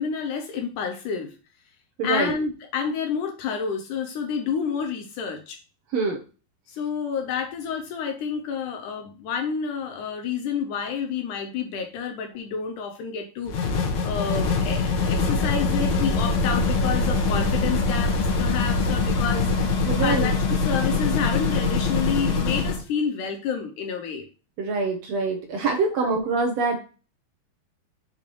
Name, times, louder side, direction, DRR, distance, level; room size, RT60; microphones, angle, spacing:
voice 1, 0.0-1.4 2.0-5.6 6.7-19.5 20.0-24.3, left 6 dB, 75° left, 4 dB, 2.0 m, -29 dB
voice 2, 2.0-2.3 5.9-6.2 19.9-20.3 24.6-26.8, right 4 dB, 70° right, 2 dB, 1.6 m, -25 dB
sound 1, 13.5-22.8, left 3 dB, 60° left, 2.5 m, -23 dB
6.7 x 5.1 x 3.0 m, 0.35 s
omnidirectional pair, 4.2 m